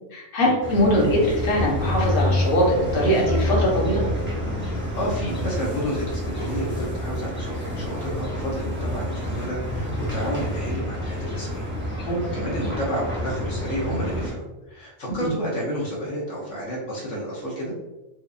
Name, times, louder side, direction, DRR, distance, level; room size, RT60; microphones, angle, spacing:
voice 1, 0.1-4.0 12.0-12.3, equal, 45° left, -3 dB, 1.1 m, -21 dB
sound 1, 0.6-14.3, left 1 dB, 10° right, 0.7 m, -28 dB
voice 2, 4.6-17.7, equal, 70° left, -4 dB, 1.1 m, -31 dB
4.5 x 2.5 x 2.5 m, 1.1 s
omnidirectional pair, 1.4 m